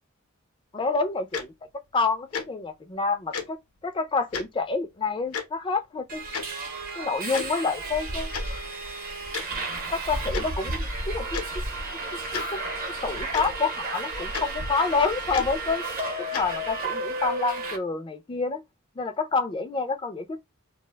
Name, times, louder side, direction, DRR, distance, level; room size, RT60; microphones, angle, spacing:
voice 1, 0.7-1.5 1.9-6.2 7.0-8.3 9.9-11.4 12.1-12.2 12.5-12.6 13.0-15.9 16.3-18.6 19.0-20.4, left 4 dB, 25° left, 0.4 m, -28 dB
Tick-tock, 1.3-1.4 2.3-2.4 3.3-3.4 4.3-4.5 5.3-5.4 6.3-6.4 7.3-7.5 8.3-8.4 9.3-9.4 10.3-10.4 11.3-11.4 12.3-12.5 13.3-13.4 14.3-14.4 15.3-15.5 16.3-16.4, left 5 dB, 90° left, 0.7 m, -31 dB
Subway metro underground, 6.1-17.8, right 2 dB, 45° right, 0.7 m, -32 dB
2.3 x 2.1 x 3.3 m
head